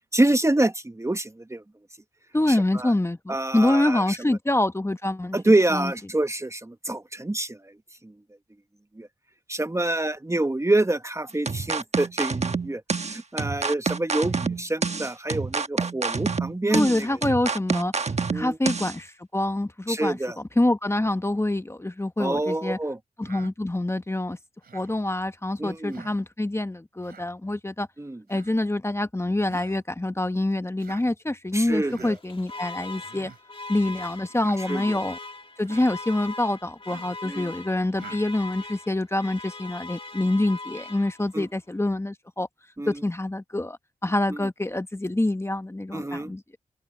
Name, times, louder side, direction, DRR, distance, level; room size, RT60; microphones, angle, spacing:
voice 1, 0.1-1.6 2.5-2.9 3.3-4.4 5.3-7.7 8.0-8.1 9.0-9.1 9.5-17.2 18.3-18.6 19.9-20.4 22.2-23.0 25.6-26.1 28.0-28.2 31.5-32.2 34.7-35.0 37.2-37.5 41.3-41.5 42.8-43.0 44.3-44.4 45.9-46.3, right 2 dB, 20° right, 1.0 m, -26 dB
voice 2, 2.3-5.4 5.7-5.9 16.7-17.9 18.3-22.8 23.2-24.4 24.7-27.9 28.3-33.3 33.7-35.2 35.6-42.5 42.9-46.4, left 1 dB, 15° left, 1.0 m, -26 dB
sound 1, 11.5-19.0, right 4 dB, 45° right, 1.2 m, -28 dB
Human voice, 23.2-23.5 24.6-24.9 25.9-26.2 27.0-27.3 28.3-28.6 29.5-29.8 30.8-31.1 31.9-32.2 33.0-33.4 34.3-34.6 35.6-35.9 36.9-37.2 38.0-38.2, right 6 dB, 90° right, 2.9 m, -46 dB
Alarm, 32.1-41.5, left 3 dB, 35° left, 1.6 m, -40 dB
open air
cardioid pair, 60°, 15 cm